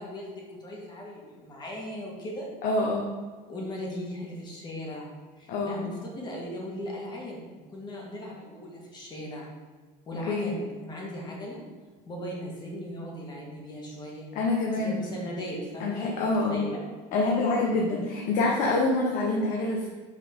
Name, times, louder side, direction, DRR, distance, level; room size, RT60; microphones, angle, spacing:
voice 1, 0.0-2.5 3.5-5.1 5.4-9.5 10.1-11.6 12.0-14.3 14.7-16.8, equal, 30° left, -2 dB, 1.7 m, -38 dB
voice 2, 2.6-3.1 5.5-5.9 10.3-10.5 14.3-15.0 15.8-16.6 17.1-19.9, left 2 dB, 65° left, -1 dB, 0.9 m, -26 dB
5.5 x 4.1 x 5.3 m, 1.4 s
cardioid pair, 135°, 15 cm